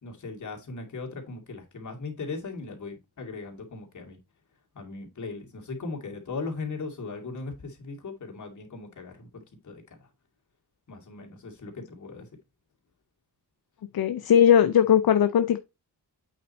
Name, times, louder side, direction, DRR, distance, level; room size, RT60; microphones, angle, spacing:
voice 1, 0.0-4.2 4.7-9.3 9.6-10.1 10.9-12.3, left 3 dB, 45° left, 2.3 m, -38 dB
voice 2, 13.9-15.6, left 9 dB, 65° left, 0.6 m, -19 dB
8.5 x 4.3 x 4.1 m
wide cardioid pair, 175°, 40 cm